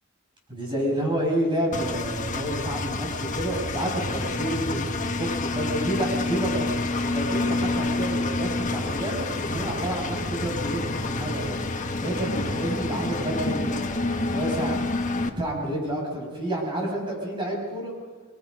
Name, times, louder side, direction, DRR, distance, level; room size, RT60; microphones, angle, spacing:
voice 1, 0.5-6.7 7.1-11.6 12.0-14.8 15.2-17.9, right 1 dB, 25° right, -1 dB, 6.7 m, -29 dB
Engine, 1.7-15.3, left 2 dB, 35° left, 1.3 m, -28 dB
27.0 x 21.0 x 5.4 m, 1.5 s
head